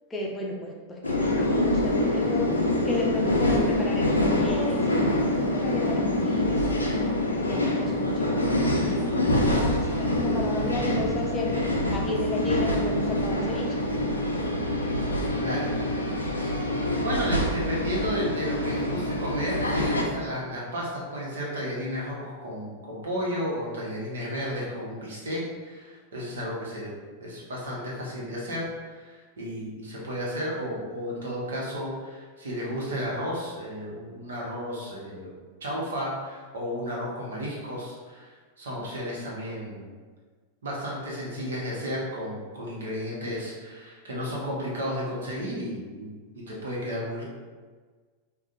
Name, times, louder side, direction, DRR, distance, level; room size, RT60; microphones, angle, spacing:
voice 1, 0.1-4.9 5.5-13.8, left 2 dB, 15° left, -2 dB, 0.6 m, -33 dB
sound 1, 1.0-20.0, left 1 dB, 85° left, 0.5 m, -25 dB
voice 2, 15.4-15.7 16.4-16.6 17.0-26.9 27.2-35.3 35.6-39.9 40.6-47.2, equal, 65° right, -4 dB, 1.0 m, -33 dB
4.8 x 2.3 x 2.6 m, 1.5 s
figure-of-eight pair, 90°, 0 cm